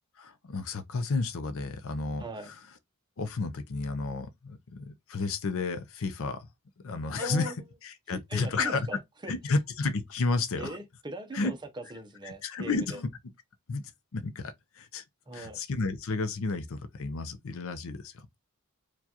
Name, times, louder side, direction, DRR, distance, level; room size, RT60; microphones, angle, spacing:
voice 1, 0.2-2.6 3.2-6.5 6.8-7.5 7.8-9.0 9.3-10.8 11.3-11.5 12.2-13.1 13.7-13.8 14.1-15.0 15.3-18.3, left 3 dB, 65° left, 0.6 m, -32 dB
voice 2, 2.2-2.5 7.2-7.5 8.1-9.3 10.6-13.0 15.3-15.6, right 2 dB, 20° right, 0.6 m, -40 dB
4.6 x 2.4 x 2.8 m
head